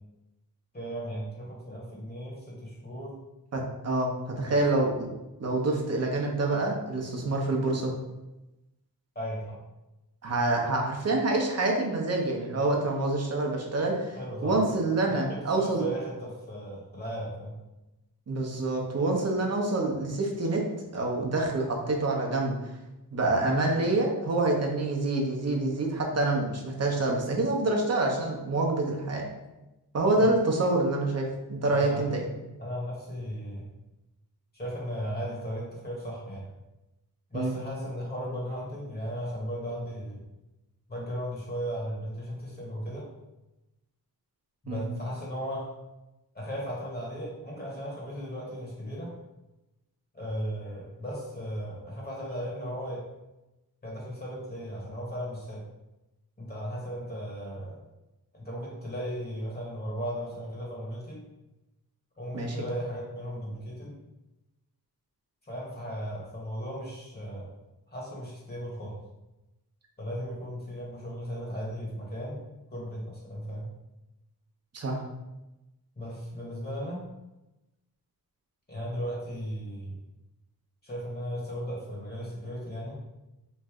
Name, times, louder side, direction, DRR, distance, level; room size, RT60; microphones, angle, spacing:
voice 1, 0.7-3.1 4.5-4.6 9.1-9.6 14.2-14.6 15.1-17.6 30.2-30.3 31.7-32.1 32.6-33.7 34.5-36.4 37.3-40.2 40.9-43.1 44.6-45.8 46.3-49.1 50.1-53.1 53.8-55.6 56.4-57.8 58.3-61.2 62.2-63.9 65.5-67.5 67.9-69.0 70.0-72.4 72.7-73.7 76.0-77.0 78.7-79.9 80.8-83.0, equal, 25° left, -4 dB, 1.2 m, -36 dB
voice 2, 3.5-5.1 5.4-7.9 10.2-15.8 18.3-20.7 20.9-22.5 23.1-29.3 29.9-32.3 37.3-37.5 44.7-44.8 62.3-62.7 74.7-75.0, right 2 dB, 45° right, 0 dB, 0.8 m, -27 dB
3.1 x 2.6 x 3.5 m, 1.0 s
cardioid pair, 80°, 37 cm